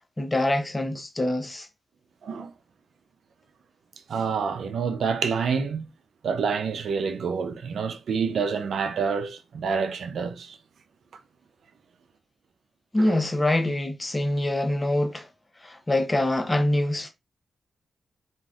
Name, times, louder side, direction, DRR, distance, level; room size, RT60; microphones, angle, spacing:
voice 1, 0.2-1.7 12.9-15.3 15.6-17.1, left 1 dB, 20° left, 0.8 m, -25 dB
voice 2, 4.1-5.9 6.2-10.6 13.0-13.2, right 5 dB, 75° right, 0.5 m, -27 dB
2.4 x 2.3 x 3.4 m
cardioid pair, 55°, 0 cm